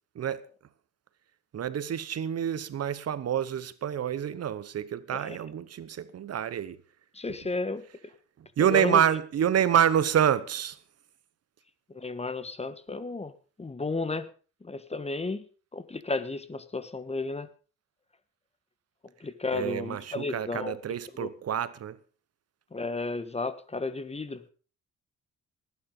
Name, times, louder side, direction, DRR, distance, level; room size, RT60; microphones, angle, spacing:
voice 1, 0.1-0.5 1.5-6.8 7.3-7.4 8.6-10.8 19.5-22.0, right 9 dB, 55° right, 1.0 m, -27 dB
voice 2, 7.1-8.1 8.7-9.0 11.9-13.3 13.6-14.3 14.6-15.4 15.7-17.5 19.2-20.8 21.2-21.3 22.7-24.4, left 3 dB, 20° left, 1.4 m, -33 dB
18.5 x 9.6 x 5.3 m
cardioid pair, 90°, 30 cm